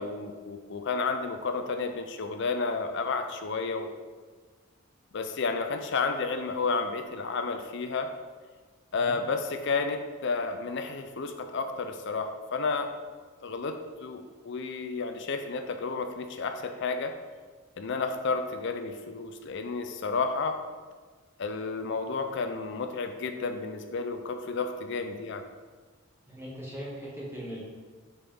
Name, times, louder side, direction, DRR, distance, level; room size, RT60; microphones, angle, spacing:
voice 1, 0.0-3.9 5.1-8.1 8.9-12.9 13.4-17.1 17.8-20.6 21.4-25.4, left 4 dB, 55° left, 7 dB, 0.5 m, -31 dB
voice 2, 26.3-27.6, equal, 10° right, -6 dB, 1.8 m, -39 dB
6.8 x 5.5 x 3.6 m, 1.4 s
head